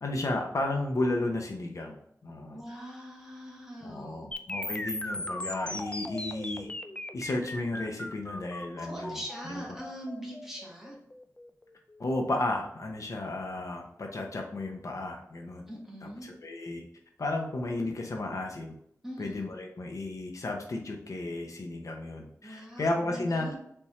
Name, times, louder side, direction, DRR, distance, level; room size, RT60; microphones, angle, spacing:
voice 1, 0.0-2.6 3.8-6.7 7.1-9.2 9.5-9.6 12.0-15.6 16.2-16.8 17.2-18.7 19.2-23.5, left 2 dB, 65° left, 2 dB, 0.7 m, -33 dB
voice 2, 2.5-4.3 8.8-10.9 15.7-16.3 19.0-19.3 22.4-23.5, equal, 5° right, -4 dB, 1.4 m, -42 dB
sound 1, 4.3-12.3, left 1 dB, 20° left, 0.4 m, -38 dB
4.2 x 3.5 x 3.0 m, 0.73 s
wide cardioid pair, 100°, 6 cm